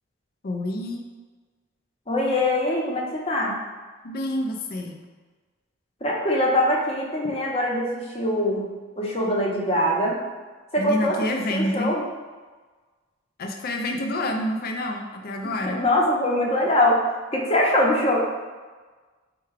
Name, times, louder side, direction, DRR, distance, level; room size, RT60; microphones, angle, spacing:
voice 1, 0.4-1.0 4.0-5.0 7.2-7.4 10.8-11.9 13.4-15.8, left 1 dB, 50° left, 3 dB, 0.4 m, -28 dB
voice 2, 2.1-3.6 6.0-8.7 9.0-10.2 10.7-11.2 11.5-12.0 15.7-17.0 17.3-18.2, left 1 dB, 30° left, -2 dB, 0.8 m, -23 dB
4.6 x 2.3 x 4.6 m, 1.3 s
head